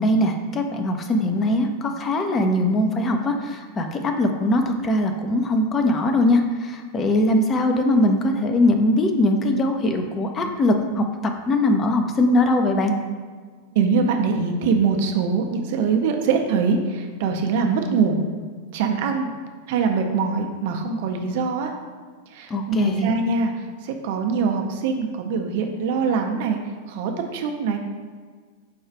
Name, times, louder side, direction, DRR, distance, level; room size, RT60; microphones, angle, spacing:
voice 1, 0.0-11.0 11.5-12.9 22.5-23.1, left 1 dB, 25° left, 4 dB, 0.5 m, -21 dB
voice 2, 13.7-18.3 18.7-19.3 19.7-21.7 22.3-26.6 26.9-27.8, right 5 dB, 50° right, 4 dB, 0.5 m, -23 dB
4.9 x 2.3 x 4.5 m, 1.5 s
figure-of-eight pair, 90°, 0 cm